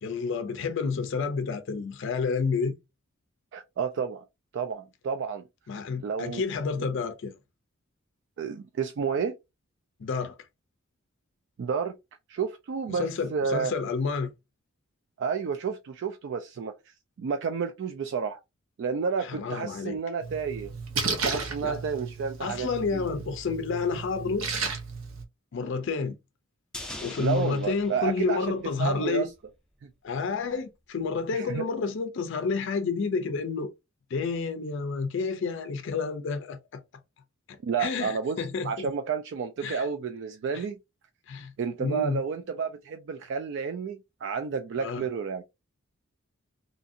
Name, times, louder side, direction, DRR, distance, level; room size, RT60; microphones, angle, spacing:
voice 1, 0.0-2.8 5.7-7.4 10.0-10.4 12.9-14.3 19.2-20.0 21.6-21.8 22.4-24.5 25.5-26.2 27.0-29.3 30.0-33.7 34.1-36.8 37.5-38.9 39.6-39.9 40.5-40.6 41.3-41.5 41.8-42.2 44.8-45.0, left 4 dB, 60° left, 0.4 m, -30 dB
voice 2, 3.5-4.2 4.5-5.4 6.0-6.4 6.8-6.9 8.4-9.4 11.6-12.0 12.3-13.7 15.2-18.4 18.8-20.7 21.1-22.7 22.9-23.0 27.2-29.3 29.8-29.9 31.3-31.6 37.6-40.8 41.6-45.4, right 6 dB, 60° right, 0.3 m, -31 dB
Splash splatter, 20.2-25.2, right 4 dB, 85° right, 0.7 m, -34 dB
sound 1, 26.7-29.1 29.4-29.5, left 1 dB, 5° left, 0.5 m, -43 dB
2.7 x 2.5 x 2.6 m
head